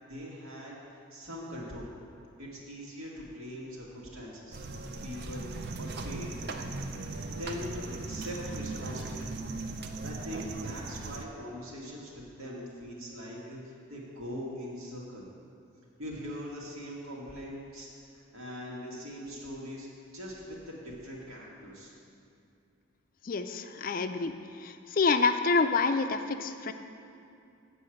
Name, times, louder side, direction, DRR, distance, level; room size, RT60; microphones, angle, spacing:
voice 1, 0.1-0.8 1.1-1.9 2.4-4.6 5.0-6.3 6.8-6.9 7.2-7.7 8.1-9.4 10.0-15.3 16.0-19.9 20.1-21.9, equal, 85° right, -4 dB, 2.0 m, -42 dB
sound 1, 4.5-11.2, right 3 dB, 50° right, 0.5 m, -38 dB
voice 2, 23.2-24.3 24.6-26.7, left 4 dB, 40° left, 8 dB, 0.4 m, -27 dB
8.5 x 5.4 x 7.7 m, 2.6 s
head